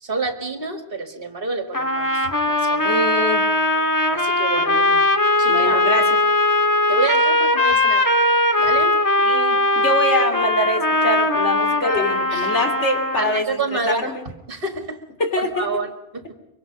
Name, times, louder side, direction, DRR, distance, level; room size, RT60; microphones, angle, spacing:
voice 1, 0.0-2.9 4.1-4.7 5.4-5.9 6.9-8.1 8.6-9.0 11.9-12.5 13.2-14.1 14.5-15.0 15.4-16.4, right 3 dB, 50° right, 7 dB, 2.3 m, -28 dB
sound 1, 1.7-13.4, left 2 dB, 15° left, 1.7 m, -19 dB
voice 2, 2.8-3.5 4.6-5.0 5.5-6.2 9.2-14.2 15.2-15.7, left 1 dB, 80° left, 5 dB, 3.2 m, -25 dB
24.0 x 24.0 x 5.2 m, 0.88 s
omnidirectional pair, 1.2 m